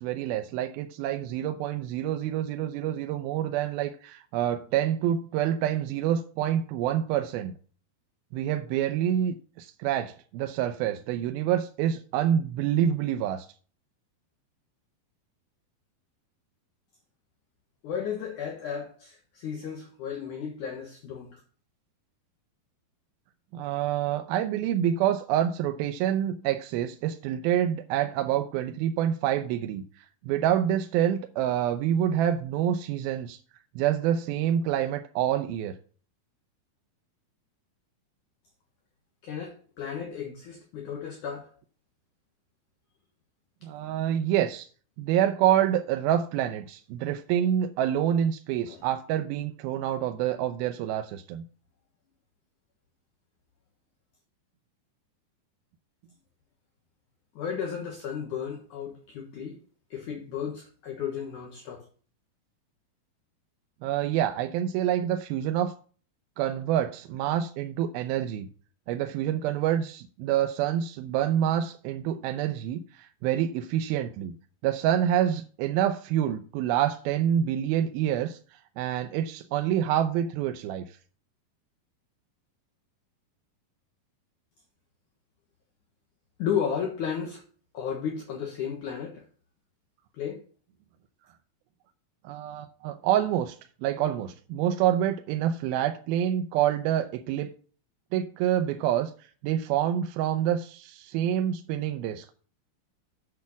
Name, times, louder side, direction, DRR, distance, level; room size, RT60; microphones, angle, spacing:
voice 1, 0.0-7.5 8.3-13.5 23.5-33.4 33.8-35.7 43.6-44.7 45.0-51.4 63.8-65.7 66.4-68.5 68.9-74.4 74.6-80.8 92.2-97.5 98.1-99.1 99.4-102.3, right 10 dB, 80° right, 2.4 m, -27 dB
voice 2, 17.8-21.4 39.2-41.5 48.7-48.8 57.4-59.6 59.9-61.9 86.4-87.4 87.7-89.2 90.1-90.4, left 7 dB, 65° left, 2.5 m, -34 dB
8.5 x 5.6 x 7.0 m
omnidirectional pair, 4.3 m